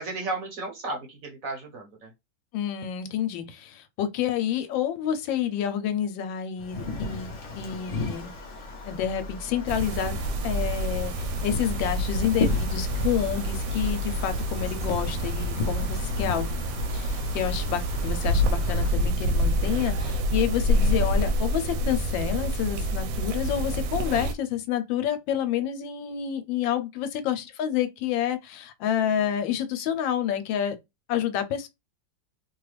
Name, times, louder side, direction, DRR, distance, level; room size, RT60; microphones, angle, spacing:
voice 1, 0.0-2.1 16.1-16.6, right 3 dB, 55° right, 1.2 m, -35 dB
voice 2, 2.5-8.3 8.8-10.2 10.4-16.5 16.9-30.8 31.1-31.7, left 9 dB, 90° left, 1.3 m, -29 dB
Wind, 6.6-18.9, left 3 dB, 50° left, 1.0 m, -35 dB
sound 1, 9.7-24.3, equal, 85° right, 1.3 m, -27 dB
3.1 x 2.3 x 3.2 m
omnidirectional pair, 2.0 m